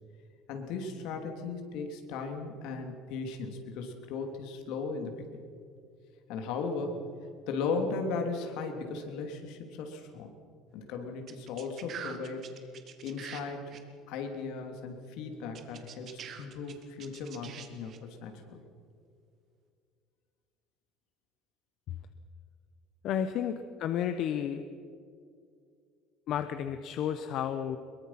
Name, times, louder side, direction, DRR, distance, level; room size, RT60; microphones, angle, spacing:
voice 1, 0.5-5.2 6.3-7.1 7.5-10.3 10.7-12.4 13.0-13.8 14.1-18.6, left 4 dB, 65° left, 4 dB, 3.0 m, -37 dB
sound 1, 11.3-13.4 13.7-13.8 15.5-18.0, right 8 dB, 35° right, 1.7 m, -44 dB
voice 2, 23.0-24.6 26.3-27.8, left 9 dB, 45° left, 9 dB, 0.9 m, -32 dB
23.0 x 22.0 x 5.9 m, 2.3 s
cardioid pair, 170°, 0 cm